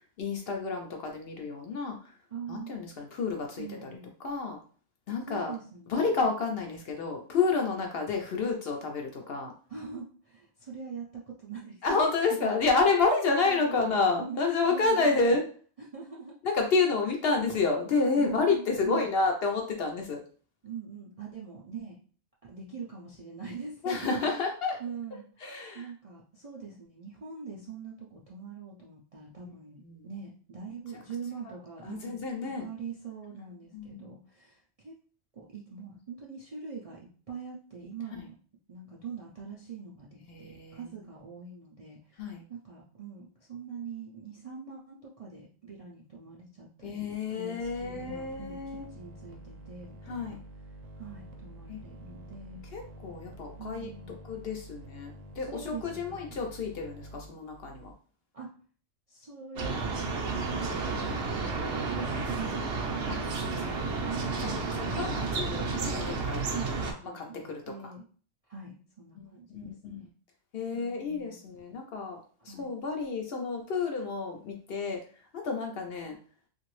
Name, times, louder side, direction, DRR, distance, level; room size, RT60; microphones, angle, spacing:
voice 1, 0.2-2.0 2.5-3.9 4.2-4.6 5.1-5.5 5.9-9.5 11.8-15.4 16.4-20.2 23.8-24.8 25.4-25.9 29.8-30.1 31.8-32.7 33.7-34.1 40.3-40.8 42.2-42.4 46.8-48.9 50.1-50.4 51.7-51.8 52.7-53.9 54.3-57.9 63.1-63.9 64.4-64.6 64.9-66.6 67.1-67.9 69.2-69.3 69.5-70.1 70.5-75.0 75.3-76.2, left 4 dB, 60° left, 2 dB, 0.7 m, -30 dB
voice 2, 2.3-2.8 3.6-4.1 5.3-6.3 9.7-12.0 12.4-12.5 12.9-14.4 14.7-15.3 15.8-16.4 18.1-19.1 20.6-22.0 22.4-24.3 24.8-25.2 25.7-35.0 35.3-38.4 38.7-50.4 51.0-52.6 53.6-54.2 55.4-56.4 58.3-58.5 59.1-60.0 60.3-62.9 66.5-68.1 68.5-70.1 70.7-71.5 72.5-72.7, right 5 dB, 45° right, -5 dB, 0.4 m, -43 dB
sound 1, 47.6-57.9, right 1 dB, 90° right, 1.0 m, -48 dB
sound 2, 59.6-66.9, right 4 dB, 65° right, 0.8 m, -31 dB
2.9 x 2.6 x 3.0 m, 0.42 s
omnidirectional pair, 1.3 m